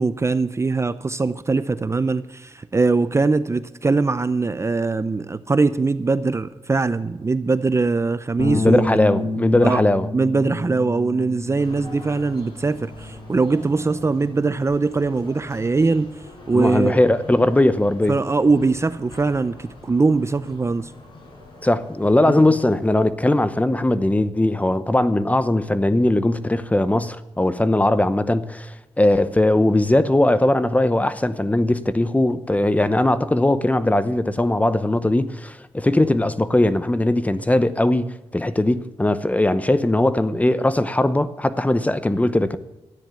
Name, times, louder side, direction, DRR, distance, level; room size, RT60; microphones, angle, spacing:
voice 1, 0.0-8.8 9.6-9.8 10.1-17.0 18.1-20.9 22.3-22.5, right 3 dB, 25° right, 0.6 m, -21 dB
Bass guitar, 8.4-14.6, left 2 dB, 70° left, 2.3 m, -30 dB
voice 2, 8.5-10.1 16.5-18.2 21.6-28.7 29.0-42.6, left 1 dB, 15° left, 0.8 m, -19 dB
sound 1, 11.6-23.0, left 2 dB, 50° left, 6.3 m, -44 dB
13.5 x 9.9 x 7.1 m
cardioid pair, 90°, 11 cm